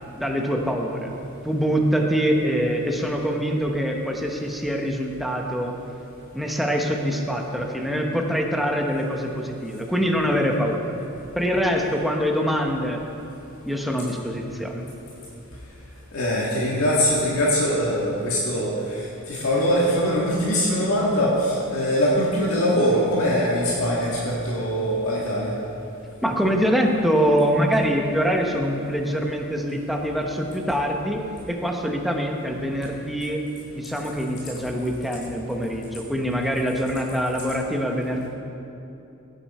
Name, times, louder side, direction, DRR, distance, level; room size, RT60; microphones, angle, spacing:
voice 1, 0.1-1.1 1.4-5.8 6.3-10.9 11.3-13.0 13.6-14.8 26.2-31.2 31.5-33.4 33.7-38.3, equal, ahead, 1 dB, 1.0 m, -24 dB
voice 2, 16.1-25.5, equal, 75° left, -6 dB, 1.9 m, -22 dB
16.0 x 9.1 x 4.3 m, 2.8 s
head